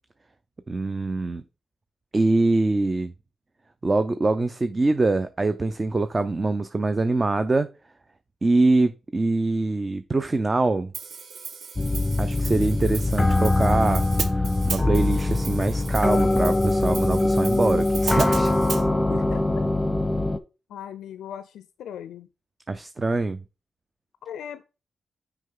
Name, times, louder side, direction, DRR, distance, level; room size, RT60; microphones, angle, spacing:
voice 1, 0.7-1.4 2.1-3.1 3.8-7.7 8.4-10.9 12.2-14.0 14.3-18.5 22.7-23.4, right 2 dB, 35° right, 0.5 m, -24 dB
Hi-hat, 10.9-18.8, right 5 dB, 70° right, 0.8 m, -36 dB
sound 1, 11.8-20.4, left 2 dB, 15° left, 0.8 m, -22 dB
voice 2, 19.1-19.4 20.7-22.3 24.2-24.6, left 9 dB, 90° left, 0.4 m, -38 dB
6.3 x 4.7 x 3.7 m
cardioid pair, 60°, 0 cm